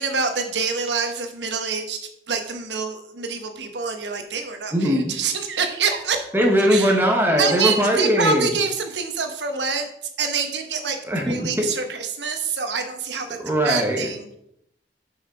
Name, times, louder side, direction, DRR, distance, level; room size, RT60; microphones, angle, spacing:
voice 1, 0.0-2.0 2.3-6.2 6.7-7.0 7.4-9.9 10.2-13.3 13.6-14.4, right 5 dB, 85° right, 6 dB, 1.1 m, -26 dB
voice 2, 4.7-5.1 6.3-8.5 11.1-11.7 13.4-14.1, equal, 10° right, 0 dB, 1.0 m, -20 dB
6.3 x 5.6 x 4.9 m, 0.76 s
head